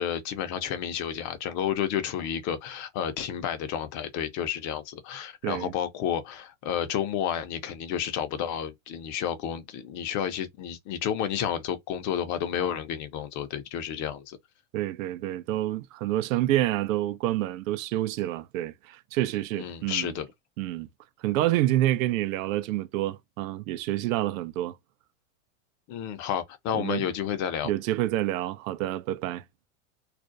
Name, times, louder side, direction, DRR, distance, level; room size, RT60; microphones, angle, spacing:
voice 1, 0.0-14.4 19.6-20.3 25.9-27.7, left 9 dB, 45° left, 0.7 m, -31 dB
voice 2, 14.7-20.1 20.6-20.9 21.2-24.8 26.7-27.1 27.6-29.4, right 14 dB, 75° right, 0.5 m, -28 dB
2.4 x 2.1 x 2.5 m
hypercardioid pair, 110°, 41 cm